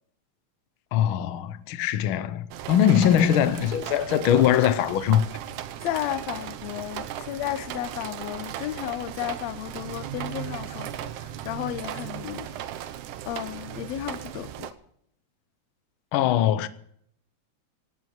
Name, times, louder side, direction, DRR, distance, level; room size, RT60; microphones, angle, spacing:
voice 1, 0.9-5.3 16.1-16.7, left 10 dB, 90° left, 1.1 m, -22 dB
sound 1, 2.5-14.7, right 11 dB, 85° right, 2.3 m, -37 dB
voice 2, 5.8-12.5 13.3-14.7, left 13 dB, 70° left, 1.8 m, -33 dB
18.0 x 9.5 x 7.2 m
omnidirectional pair, 3.5 m